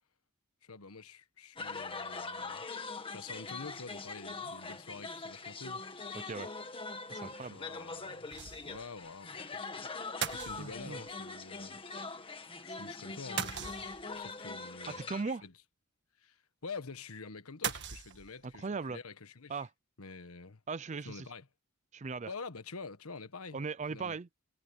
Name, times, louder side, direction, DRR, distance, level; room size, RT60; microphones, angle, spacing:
voice 1, 0.6-2.6 3.1-5.8 7.2-8.3 8.6-9.9 10.3-11.8 12.6-13.9 14.1-15.5 16.2-19.7 20.0-20.6 21.0-21.5 22.3-23.6 23.9-24.2, left 4 dB, 85° left, 1.4 m, -47 dB
sound 1, 1.6-15.2, left 3 dB, 25° left, 1.8 m, -42 dB
voice 2, 6.1-6.5 7.1-7.6 10.6-11.0 15.1-15.4 18.4-19.0 19.5-19.7 20.7-21.3 21.9-22.3 23.5-24.3, right 4 dB, 35° right, 0.5 m, -38 dB
sound 2, 8.3-8.9 9.2-9.3 10.2-11.1 13.4-14.2 17.6-18.6, right 8 dB, 55° right, 1.7 m, -38 dB
head